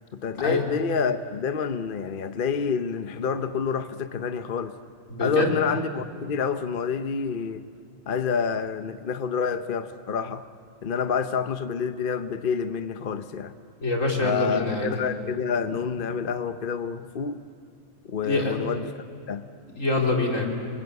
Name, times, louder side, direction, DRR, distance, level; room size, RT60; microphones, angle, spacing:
voice 1, 0.2-4.7 5.2-7.6 8.1-10.4 10.8-13.5 14.2-17.4 18.1-18.9 19.3-19.5, left 6 dB, 45° left, 10 dB, 0.9 m, -28 dB
voice 2, 5.1-5.6 13.8-14.9 18.2-18.5 19.7-20.5, left 2 dB, 80° left, 0 dB, 4.0 m, -25 dB
29.5 x 23.0 x 8.1 m, 2.4 s
omnidirectional pair, 1.3 m